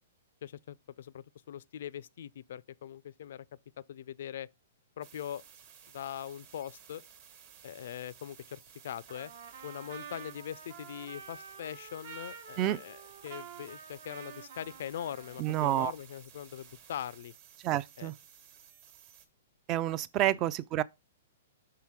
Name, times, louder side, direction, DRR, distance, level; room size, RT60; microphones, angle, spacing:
voice 1, 0.4-3.5 3.8-4.5 5.0-5.4 5.9-7.0 7.6-9.3 9.6-17.3 18.0-18.1 20.3-20.4, left 10 dB, 65° left, 0.3 m, -42 dB
sound 1, 5.0-19.3, right 8 dB, 45° right, 1.2 m, -56 dB
Trumpet, 9.1-15.7, right 6 dB, 65° right, 1.0 m, -48 dB
voice 2, 15.4-15.9 17.6-18.1 19.7-20.8, right 13 dB, 30° right, 0.3 m, -29 dB
5.7 x 3.9 x 4.6 m
hypercardioid pair, 150°, 0 cm